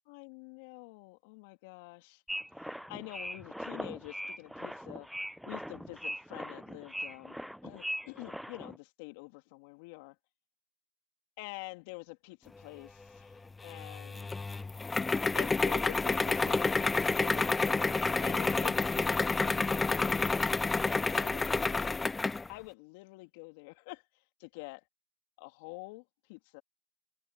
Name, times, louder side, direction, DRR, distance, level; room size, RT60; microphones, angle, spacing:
voice 1, 0.1-2.2 2.6-5.1 5.5-7.4 7.6-10.2 11.4-14.3 15.3-20.7 21.1-21.9 22.5-24.8 25.4-26.6, left 27 dB, 70° left, 2.7 m, -48 dB
sound 1, 2.3-8.8, equal, ahead, 0.4 m, -40 dB
sound 2, 13.7-22.5, left 3 dB, 20° left, 0.8 m, -29 dB
hypercardioid pair, 70°, 0 cm